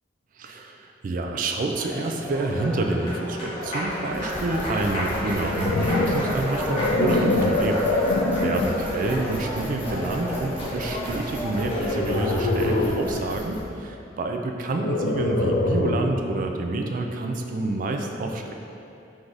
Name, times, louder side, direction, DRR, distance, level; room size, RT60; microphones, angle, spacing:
voice 1, 0.4-8.1 8.4-18.5, right 2 dB, 45° right, 3 dB, 0.3 m, -28 dB
Applause, 1.5-13.3, equal, 30° left, 0.9 m, -31 dB
sound 1, 4.1-13.6, equal, 10° right, 0.8 m, -37 dB
sound 2, 5.2-8.9 9.5-9.8 11.5-13.1 14.7-16.2, left 2 dB, 90° left, 0.4 m, -25 dB
3.9 x 2.6 x 4.5 m, 2.7 s
head